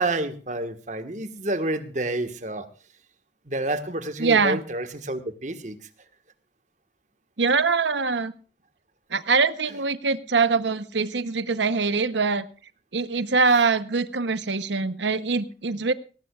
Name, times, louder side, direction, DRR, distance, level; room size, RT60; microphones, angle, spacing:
voice 1, 0.0-2.7 3.5-5.7, right 2 dB, 40° right, 9 dB, 1.5 m, -29 dB
voice 2, 4.2-4.6 7.4-8.3 9.1-12.4 12.9-15.9, right 4 dB, 80° right, 13 dB, 0.9 m, -23 dB
18.0 x 18.0 x 2.4 m, 0.38 s
head